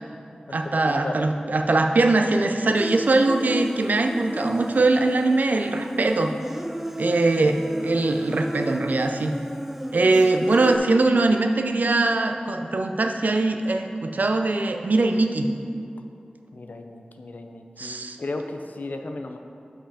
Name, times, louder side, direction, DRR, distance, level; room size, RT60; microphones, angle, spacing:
voice 1, 0.5-6.3 7.0-7.6 7.8-9.3 9.9-15.5 17.8-18.2, right 2 dB, 75° right, 5 dB, 0.5 m, -21 dB
Human voice, 2.8-10.8, right 1 dB, 10° right, 0.4 m, -33 dB
voice 2, 16.5-19.4, left 2 dB, 75° left, 5 dB, 0.5 m, -35 dB
5.7 x 5.4 x 4.9 m, 2.5 s
wide cardioid pair, 45°, 3 cm